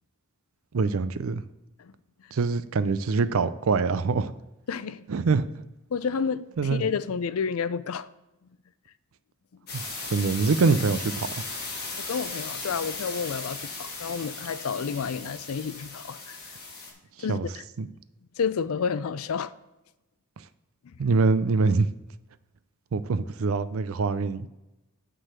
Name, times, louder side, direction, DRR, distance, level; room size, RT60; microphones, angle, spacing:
voice 1, 0.7-1.4 2.3-4.3 5.1-5.5 6.6-6.9 9.7-9.8 10.1-11.3 17.3-17.5 17.8-17.9 21.0-21.9 22.9-24.5, right 4 dB, 65° right, 0.5 m, -24 dB
voice 2, 4.7-5.0 5.9-8.1 12.1-16.4 17.2-17.6 18.4-19.5 20.8-21.0, left 6 dB, 70° left, 0.4 m, -30 dB
sound 1, 9.7-16.9, left 3 dB, 50° left, 2.0 m, -37 dB
9.1 x 3.9 x 6.3 m
head